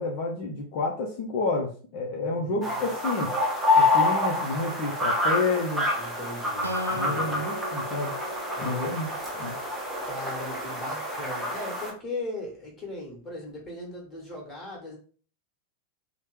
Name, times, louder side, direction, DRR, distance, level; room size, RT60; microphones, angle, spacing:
voice 1, 0.0-3.4 3.8-5.9 6.9-8.1 8.6-9.1 9.4-9.5, left 3 dB, 45° left, -1 dB, 0.5 m, -29 dB
voice 2, 2.2-2.9 5.9-7.4 8.6-8.9 10.0-15.0, left 2 dB, 15° left, -3 dB, 1.4 m, -38 dB
sound 1, 2.6-11.9, left 2 dB, 5° right, 0.8 m, -27 dB
Acoustic guitar, 6.6-10.1, equal, 80° right, 0.4 m, -38 dB
3.0 x 2.1 x 3.1 m, 0.42 s
figure-of-eight pair, 90°, 0 cm